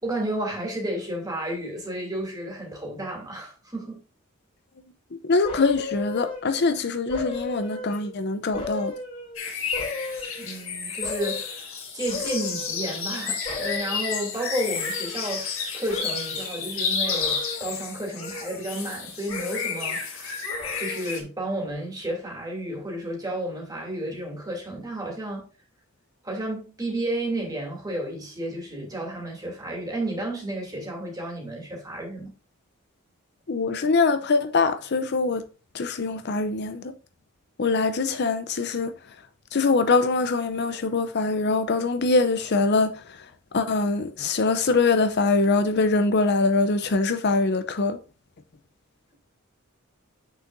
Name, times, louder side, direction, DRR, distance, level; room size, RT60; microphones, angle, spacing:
voice 1, 0.0-4.0 10.4-20.4 20.8-25.5 26.2-32.3, right 1 dB, 20° right, 2.6 m, -32 dB
voice 2, 5.2-8.9 33.5-35.4 35.7-36.8 37.6-38.9 39.5-42.9 43.5-48.0, left 3 dB, 55° left, 0.6 m, -23 dB
sound 1, 5.4-6.7 7.1-8.2 8.5-10.6 11.0-11.6 12.1-13.2 13.4-15.6 15.9-16.6 17.0-17.8 18.1-19.0 19.3-20.0 20.4-21.2 21.6-21.7, left 3 dB, 30° left, 3.2 m, -37 dB
sound 2, 9.4-21.2, left 6 dB, 70° left, 2.0 m, -31 dB
8.0 x 6.3 x 2.6 m
head